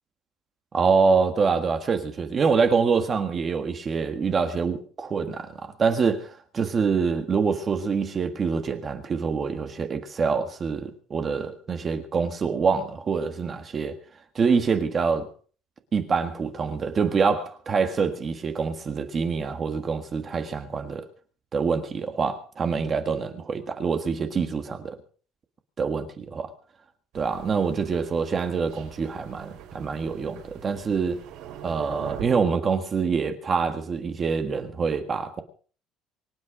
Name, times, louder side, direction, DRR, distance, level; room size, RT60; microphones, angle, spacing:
voice 1, 0.7-13.9 14.3-15.2 15.9-21.0 21.5-25.0 25.8-26.5 27.1-31.2 31.6-35.4, right 5 dB, 20° right, 1.6 m, -25 dB
Thunder, 27.1-32.2, right 10 dB, 55° right, 5.2 m, -43 dB
24.0 x 9.7 x 5.0 m
cardioid pair, 180°, 0 cm